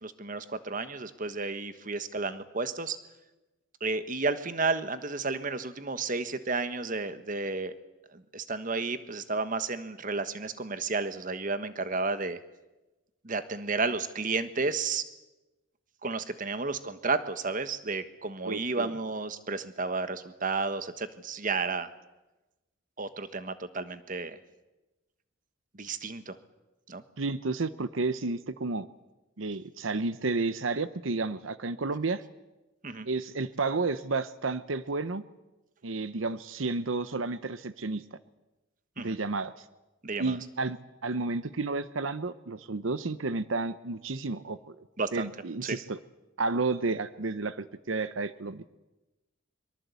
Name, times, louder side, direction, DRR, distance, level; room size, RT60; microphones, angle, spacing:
voice 1, 0.0-3.0 3.8-7.7 8.1-12.4 13.2-15.0 16.0-21.9 23.0-24.4 25.8-26.4 26.9-27.0 32.8-33.1 39.0-39.2 40.0-40.4 45.0-45.3 45.7-45.8, right 3 dB, 40° right, 11 dB, 1.3 m, -32 dB
voice 2, 18.4-18.9 27.2-28.9 29.4-32.2 33.0-35.2 35.8-38.0 39.0-39.6 40.2-40.8 41.0-44.8 45.1-46.0 46.4-48.6, right 3 dB, 80° right, 14 dB, 0.9 m, -31 dB
23.5 x 23.5 x 8.3 m, 1.1 s
head